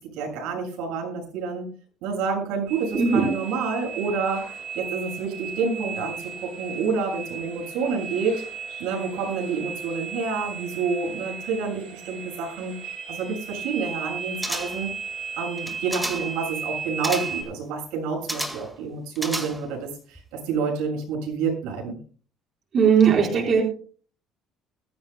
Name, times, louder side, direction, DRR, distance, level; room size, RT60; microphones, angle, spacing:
voice 1, 0.0-1.7 2.0-4.4 4.7-8.5 8.8-12.8 13.1-14.9 15.4-22.0, right 5 dB, 90° right, 0 dB, 7.1 m, -28 dB
sound 1, 2.7-17.4, right 6 dB, 65° right, 7.1 m, -36 dB
voice 2, 2.9-3.3 22.7-23.6, right 6 dB, 35° right, 1 dB, 4.3 m, -18 dB
sound 2, 14.4-14.9 15.6-16.4 17.0-17.5 18.3-18.7 19.2-19.8 20.1-20.2, right 1 dB, 5° right, 1.8 m, -32 dB
22.0 x 14.0 x 2.2 m, 0.40 s
cardioid pair, 165°, 0 cm